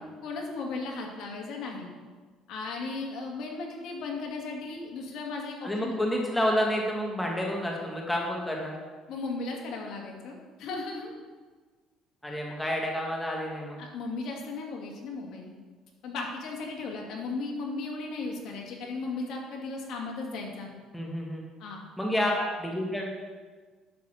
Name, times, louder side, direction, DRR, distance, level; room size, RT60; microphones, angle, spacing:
voice 1, 0.2-1.9 2.5-5.9 9.1-11.1 13.8-15.5 16.0-20.7 21.6-21.8, left 3 dB, 65° left, 0 dB, 1.9 m, -36 dB
voice 2, 5.6-8.8 12.2-13.8 20.9-21.4 22.0-23.1, equal, 5° left, -1 dB, 1.4 m, -29 dB
10.5 x 4.1 x 6.4 m, 1.4 s
cardioid pair, 120°, 0 cm